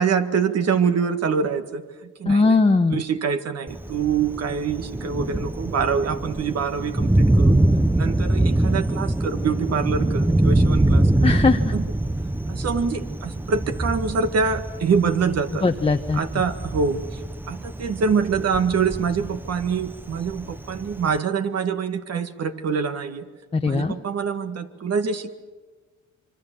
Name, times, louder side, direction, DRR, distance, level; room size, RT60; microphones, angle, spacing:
voice 1, 0.0-2.6 2.9-7.6 7.9-11.3 11.7-11.8 12.5-15.7 16.1-17.2 17.5-23.3 23.6-25.3, right 6 dB, 55° right, 8 dB, 1.9 m, -25 dB
voice 2, 2.3-3.0 11.2-11.7 15.6-16.2 23.5-23.9, left 3 dB, 20° left, 4 dB, 1.0 m, -19 dB
Thunder, 3.7-21.2, right 1 dB, 5° right, 0.7 m, -24 dB
25.0 x 24.0 x 7.0 m, 1.4 s
cardioid pair, 90°, 30 cm